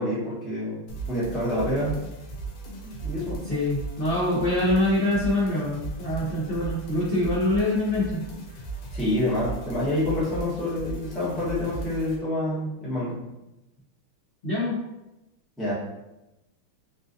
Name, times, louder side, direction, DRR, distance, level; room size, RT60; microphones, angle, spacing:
voice 1, 0.0-2.0 2.8-3.4 8.9-13.2 15.6-15.7, left 1 dB, ahead, -9 dB, 0.4 m, -27 dB
sound 1, 0.9-12.2, right 3 dB, 85° left, 1.6 m, -37 dB
voice 2, 3.5-8.2 14.4-14.8, left 1 dB, 70° left, -9 dB, 0.5 m, -24 dB
4.1 x 2.5 x 2.6 m, 0.95 s
omnidirectional pair, 2.4 m